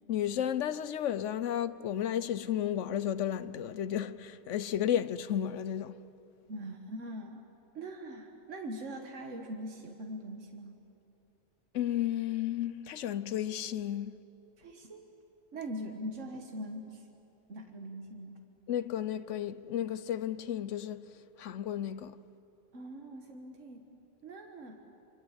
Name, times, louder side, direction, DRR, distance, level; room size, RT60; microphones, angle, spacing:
voice 1, 0.1-6.0 11.7-14.1 18.7-22.2, left 10 dB, 80° left, 1.1 m, -33 dB
voice 2, 6.5-7.4 7.7-10.8 14.6-15.1 15.5-17.1 17.5-18.4 22.7-23.9 24.2-24.8, right 1 dB, 85° right, 1.8 m, -42 dB
25.5 x 24.5 x 8.2 m
omnidirectional pair, 1.2 m